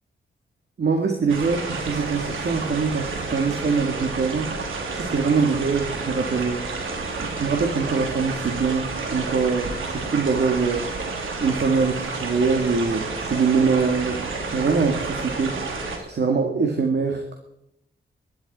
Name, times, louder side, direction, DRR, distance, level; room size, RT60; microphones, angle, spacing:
voice 1, 0.8-4.5 4.9-6.7 7.2-10.9 11.4-15.6 16.1-17.4, right 5 dB, 60° right, 3 dB, 2.1 m, -23 dB
sound 1, 1.3-16.0, right 3 dB, 90° right, 2.9 m, -30 dB
22.0 x 11.0 x 4.3 m, 0.81 s
cardioid pair, 85°, 20 cm